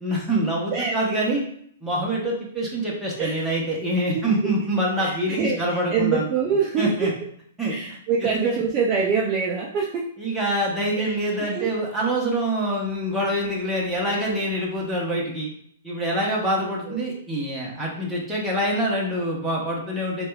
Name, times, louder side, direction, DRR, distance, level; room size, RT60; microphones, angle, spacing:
voice 1, 0.0-1.4 1.8-6.3 6.8-7.1 7.6-8.6 10.2-15.5 15.8-20.3, right 1 dB, 5° right, -5 dB, 0.7 m, -25 dB
voice 2, 3.2-3.5 4.1-4.3 5.0-6.9 7.7-10.1 11.0-11.1 11.4-11.7 16.9-17.0, right 5 dB, 25° right, -2 dB, 0.3 m, -25 dB
4.7 x 2.2 x 2.2 m, 0.65 s
hypercardioid pair, 170°, 0 cm